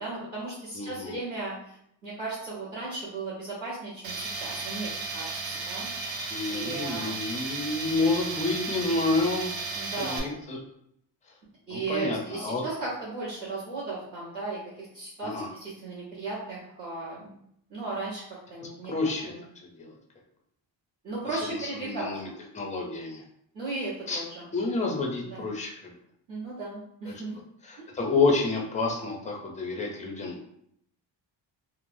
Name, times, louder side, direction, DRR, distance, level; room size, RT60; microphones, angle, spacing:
voice 1, 0.0-1.8 2.0-5.4 5.7-5.9 6.5-7.2 9.7-10.3 11.7-17.4 17.7-18.2 18.5-19.4 21.0-22.1 23.5-24.5 25.3-25.4 26.3-27.3, right 3 dB, 45° right, -13 dB, 1.2 m, -36 dB
voice 2, 0.7-1.1 6.3-9.5 10.0-10.6 11.7-12.6 15.2-15.5 18.6-19.3 19.6-19.9 21.5-22.3 22.5-23.2 24.1-24.2 24.5-25.9 27.6-30.5, left 3 dB, 15° left, 0 dB, 0.4 m, -29 dB
Tools, 4.0-10.2, right 4 dB, 80° right, 0.7 m, -34 dB
3.1 x 2.1 x 2.6 m, 0.73 s
wide cardioid pair, 135°, 46 cm